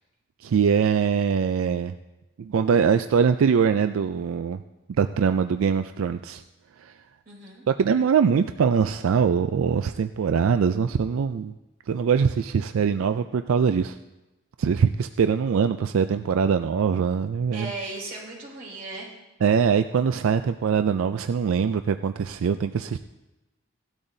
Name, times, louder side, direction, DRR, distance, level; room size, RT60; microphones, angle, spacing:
voice 1, 0.4-1.9 2.4-4.6 5.0-6.4 6.8-6.9 7.7-11.5 11.9-14.0 14.6-17.7 19.4-23.0, right 6 dB, 85° right, 9 dB, 0.4 m, -22 dB
voice 2, 7.2-7.6 17.5-19.1, right 3 dB, 45° right, -5 dB, 5.2 m, -36 dB
17.0 x 12.5 x 2.7 m, 1.0 s
head